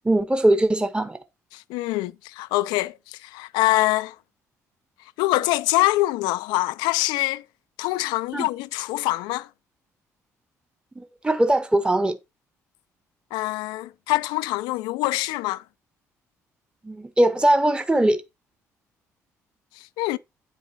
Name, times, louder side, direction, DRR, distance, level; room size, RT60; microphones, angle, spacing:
voice 1, 0.0-1.2 8.3-8.5 11.0-12.2 16.8-18.2, right 1 dB, 10° right, 1.1 m, -20 dB
voice 2, 1.5-4.2 5.2-7.4 7.8-9.5 13.3-15.6 19.8-20.2, left 18 dB, 65° left, 0.4 m, -24 dB
9.5 x 8.1 x 2.8 m
figure-of-eight pair, 45°, 8 cm